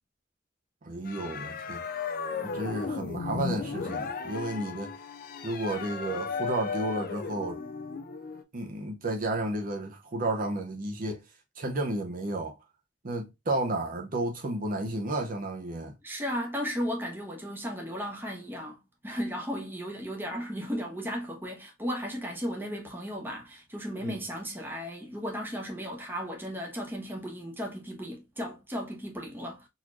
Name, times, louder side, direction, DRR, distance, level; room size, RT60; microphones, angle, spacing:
voice 1, 0.8-1.8 2.4-4.9 5.4-7.6 8.5-11.2 11.6-12.6 13.0-15.9 24.0-24.2, right 2 dB, 50° right, 0.7 m, -32 dB
sound 1, 1.1-8.4, left 5 dB, 55° left, 0.5 m, -35 dB
voice 2, 16.0-18.8 19.0-29.7, equal, 10° right, 1.1 m, -35 dB
4.0 x 3.0 x 2.4 m
head